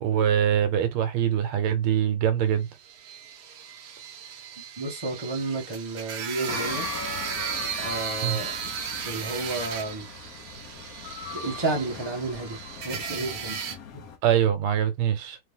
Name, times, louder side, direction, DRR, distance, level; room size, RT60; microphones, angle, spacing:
voice 1, 0.0-2.7 8.2-8.4 14.2-15.4, right 9 dB, 80° right, 1.6 m, -23 dB
sound 1, 2.8-13.8, right 7 dB, 60° right, 1.2 m, -36 dB
voice 2, 4.8-6.9 7.8-8.5 9.1-10.1 11.3-12.6 12.8-14.0, right 2 dB, 25° right, 0.5 m, -31 dB
sound 2, 6.5-14.2, left 6 dB, 65° left, 0.9 m, -39 dB
3.4 x 3.3 x 3.6 m
omnidirectional pair, 2.4 m